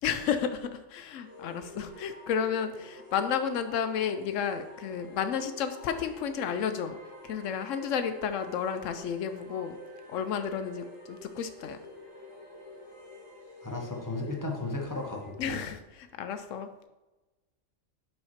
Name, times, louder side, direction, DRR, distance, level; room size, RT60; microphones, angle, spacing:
voice 1, 0.0-7.0 7.2-9.8 10.1-11.8 15.4-16.9, left 7 dB, 80° left, 9 dB, 0.9 m, -32 dB
sound 1, 1.2-15.4, left 2 dB, 80° right, 2.1 m, -48 dB
voice 2, 13.6-15.6, left 2 dB, 15° left, 0 dB, 1.0 m, -35 dB
5.6 x 4.3 x 5.6 m, 1.1 s
omnidirectional pair, 1.3 m